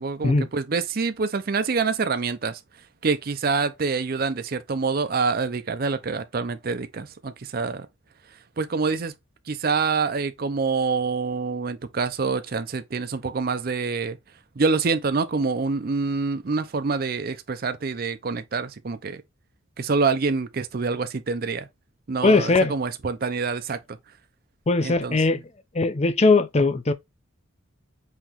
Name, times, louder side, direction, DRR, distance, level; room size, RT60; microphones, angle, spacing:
voice 1, 0.0-2.6 3.0-7.9 8.6-9.1 9.5-14.2 14.6-19.2 19.8-21.7 22.1-23.8 24.8-25.2, right 4 dB, 45° right, 0.5 m, -26 dB
voice 2, 22.2-22.7 24.7-25.4 25.7-26.9, left 3 dB, 30° left, 0.5 m, -20 dB
5.7 x 2.9 x 3.0 m
head